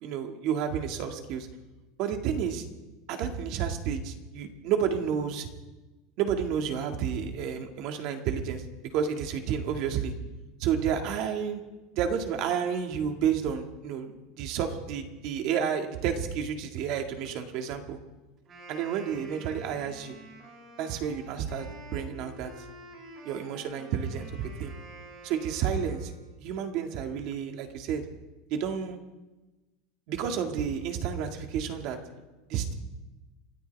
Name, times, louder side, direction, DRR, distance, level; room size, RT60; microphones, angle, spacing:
voice 1, 0.0-1.5 2.0-2.6 3.1-5.5 6.2-8.6 8.9-10.1 10.6-11.6 11.9-18.0 18.7-20.2 20.8-21.7 21.9-22.5 23.3-24.7 25.2-26.1 26.4-28.0 28.5-29.0 30.1-32.0 32.5-32.7, right 8 dB, 50° right, 5 dB, 2.0 m, -30 dB
Wind instrument woodwind instrument, 18.4-26.4, right 1 dB, 30° right, 6.6 m, -48 dB
29.0 x 13.5 x 3.5 m, 1.1 s
supercardioid pair, 155°, 0 cm